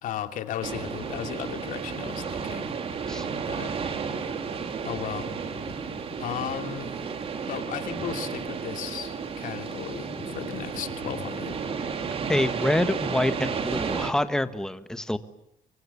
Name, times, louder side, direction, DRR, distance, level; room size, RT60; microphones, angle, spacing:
voice 1, 0.0-2.7 3.5-3.7 4.8-5.3 6.2-6.9 7.5-11.6, left 10 dB, 70° left, 7 dB, 2.8 m, -35 dB
sound 1, 0.6-14.1, right 6 dB, 45° right, 3.0 m, -32 dB
sound 2, 5.0-6.6 7.6-9.1 9.4-11.8, left 6 dB, 45° left, 7.4 m, -47 dB
voice 2, 12.3-15.2, left 1 dB, 5° left, 11 dB, 1.4 m, -26 dB
25.0 x 23.5 x 9.7 m, 0.77 s
cardioid pair, 140°, 14 cm